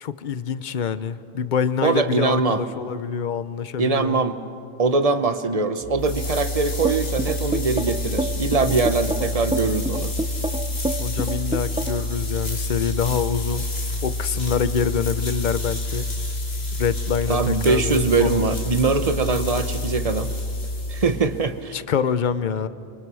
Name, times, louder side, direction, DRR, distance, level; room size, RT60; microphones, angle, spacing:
voice 1, 0.0-4.2 11.0-13.7 14.0-16.0 16.7-18.5 21.7-22.7, left 7 dB, 50° left, 13 dB, 0.9 m, -25 dB
voice 2, 1.8-2.6 3.8-4.4 4.8-10.1 17.3-20.3 20.9-21.8, right 4 dB, 35° right, 10 dB, 1.0 m, -22 dB
sound 1, 5.8-21.6, left 1 dB, 75° left, 2.5 m, -28 dB
sound 2, 6.8-12.1, right 1 dB, 10° right, 0.5 m, -27 dB
29.5 x 24.0 x 6.3 m, 2.4 s
omnidirectional pair, 1.0 m